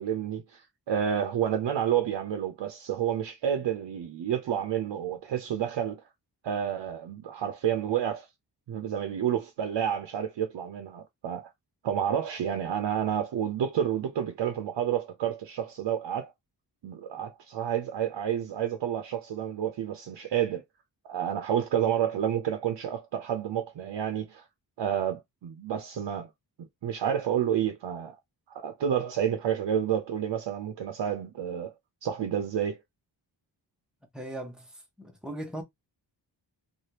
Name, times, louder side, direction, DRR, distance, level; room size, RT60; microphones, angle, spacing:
voice 1, 0.0-6.0 6.4-8.3 8.7-11.5 11.8-16.3 16.8-20.6 21.1-24.5 24.8-26.3 26.6-28.2 28.5-31.7 32.0-32.8, right 9 dB, 75° right, 0.6 m, -30 dB
voice 2, 34.1-35.6, right 1 dB, ahead, 0.7 m, -39 dB
3.2 x 2.4 x 2.8 m
wide cardioid pair, 160°, 43 cm